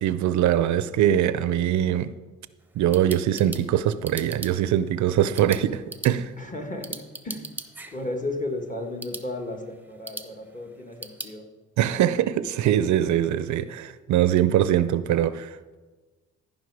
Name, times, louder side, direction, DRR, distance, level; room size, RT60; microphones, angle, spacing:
voice 1, 0.0-2.1 2.8-6.3 11.8-15.7, right 11 dB, 70° right, 0.5 m, -22 dB
sound 1, 2.6-11.3, right 2 dB, 5° right, 0.8 m, -42 dB
voice 2, 6.4-7.5 7.9-11.5, left 2 dB, 25° left, 1.6 m, -34 dB
14.5 x 5.4 x 4.8 m
cardioid pair, 90°, 30 cm